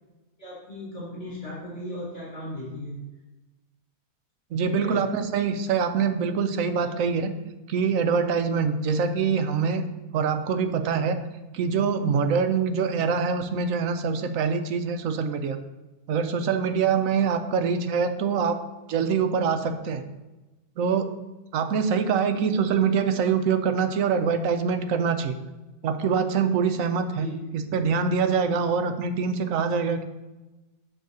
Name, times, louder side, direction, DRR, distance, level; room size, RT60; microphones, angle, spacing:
voice 1, 0.4-3.0 4.7-5.0 6.8-6.9 27.2-27.6, left 1 dB, 40° left, -7 dB, 3.6 m, -37 dB
voice 2, 4.5-7.3 7.7-9.8 10.1-11.2 11.5-15.6 16.1-18.6 18.9-20.0 20.8-21.1 21.5-25.4 25.8-27.3 27.5-30.1, right 6 dB, 70° right, 8 dB, 1.0 m, -24 dB
9.2 x 3.7 x 6.9 m, 1.1 s
omnidirectional pair, 1.6 m